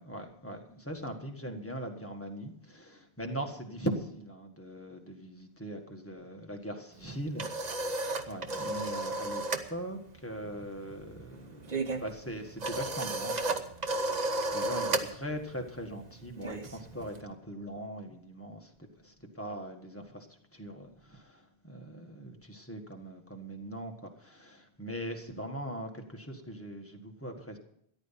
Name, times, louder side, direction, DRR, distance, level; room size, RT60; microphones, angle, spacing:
voice 1, 0.0-9.4 9.7-13.6 14.2-18.7 19.0-20.3 20.5-27.6, right 1 dB, 10° left, 2 dB, 1.6 m, -40 dB
sound 1, 7.0-9.7 10.0-10.3 10.5-17.2, right 2 dB, 45° right, 1.0 m, -34 dB
14.0 x 10.5 x 5.8 m, 0.70 s
omnidirectional pair, 1.1 m